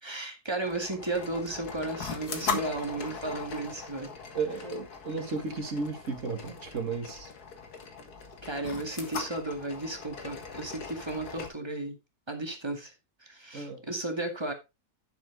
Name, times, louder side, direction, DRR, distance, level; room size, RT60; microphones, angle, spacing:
voice 1, 0.0-4.1 8.4-12.0 12.3-12.9 13.2-14.5, right 2 dB, 15° right, 2.0 m, -34 dB
sound 1, 0.6-11.5, left 5 dB, 75° left, 2.1 m, -39 dB
voice 2, 4.3-7.3 13.5-13.8, right 4 dB, 55° right, 2.1 m, -34 dB
10.5 x 7.4 x 3.8 m
omnidirectional pair, 1.6 m